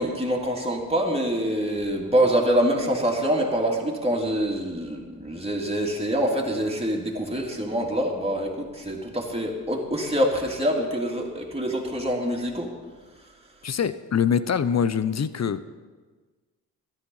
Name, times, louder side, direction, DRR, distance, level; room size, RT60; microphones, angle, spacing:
voice 1, 0.0-12.7, equal, 15° right, -1 dB, 3.1 m, -25 dB
voice 2, 13.6-15.6, left 7 dB, 45° left, 14 dB, 0.8 m, -24 dB
13.0 x 10.0 x 5.6 m, 1.4 s
supercardioid pair, 45°, 37 cm